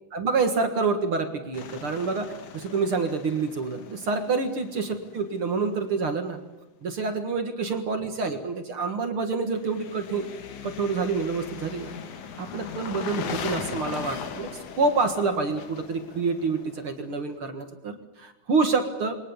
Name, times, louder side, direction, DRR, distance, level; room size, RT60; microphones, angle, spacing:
voice 1, 0.1-6.4 6.8-10.3 10.6-11.9 12.4-14.5 14.8-19.2, right 4 dB, 45° right, 6 dB, 2.3 m, -27 dB
sound 1, 1.5-5.4 9.5-17.2, left 7 dB, 65° left, 3.0 m, -39 dB
27.5 x 23.0 x 7.3 m, 1.0 s
omnidirectional pair, 3.7 m